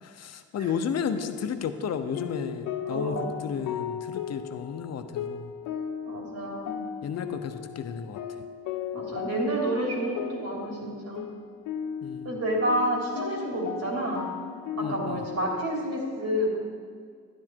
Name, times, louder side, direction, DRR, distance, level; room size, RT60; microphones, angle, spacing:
voice 1, 0.0-5.5 7.0-8.2 12.0-12.3 14.8-15.2, left 6 dB, 60° left, 9 dB, 0.9 m, -33 dB
sound 1, 1.0-15.6, left 8 dB, 85° left, 0.7 m, -37 dB
voice 2, 2.8-3.3 6.0-6.7 8.9-11.2 12.2-14.3 14.8-16.6, right 1 dB, 60° right, -2 dB, 3.3 m, -29 dB
12.0 x 9.9 x 4.6 m, 2.1 s
cardioid pair, 90°, 30 cm